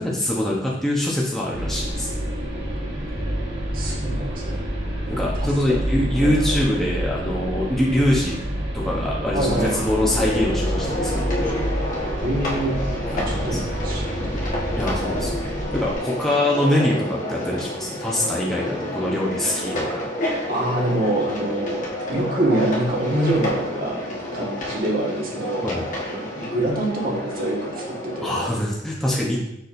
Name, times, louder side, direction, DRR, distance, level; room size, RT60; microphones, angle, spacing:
voice 1, 0.0-2.1 5.1-8.4 8.7-11.7 13.1-13.6 14.7-20.1 25.6-25.9 28.2-29.4, left 1 dB, ahead, -5 dB, 0.9 m, -24 dB
sound 1, 1.5-16.0, equal, 70° right, 1.7 m, -28 dB
voice 2, 3.7-4.6 5.0-5.8 6.2-6.6 9.3-9.7 12.2-12.8 13.1-13.6 13.8-14.2 20.5-21.8 22.1-24.0 24.3-25.7 26.1-28.6, right 1 dB, 50° right, -3 dB, 1.5 m, -25 dB
sound 2, 9.6-28.2, left 1 dB, 45° left, 1.5 m, -29 dB
6.7 x 6.2 x 2.6 m, 0.81 s
head